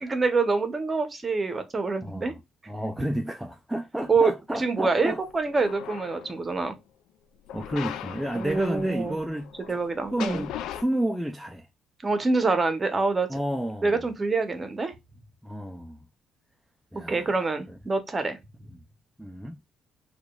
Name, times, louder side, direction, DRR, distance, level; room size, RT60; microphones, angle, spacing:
voice 1, 0.0-2.3 4.1-6.7 8.3-9.2 9.7-10.4 12.0-13.3 13.8-14.9 17.1-18.4, right 3 dB, 20° right, 0.8 m, -26 dB
voice 2, 2.0-2.4 2.7-5.2 7.5-9.8 10.1-11.7 13.3-14.1 15.4-16.0 16.9-17.4 17.7-17.8 18.7-18.8 19.2-19.6, right 1 dB, 5° right, 0.3 m, -31 dB
sound 1, 5.2-6.6 7.5-10.8, left 10 dB, 85° left, 0.3 m, -39 dB
4.8 x 2.3 x 2.2 m
cardioid pair, 135°, 0 cm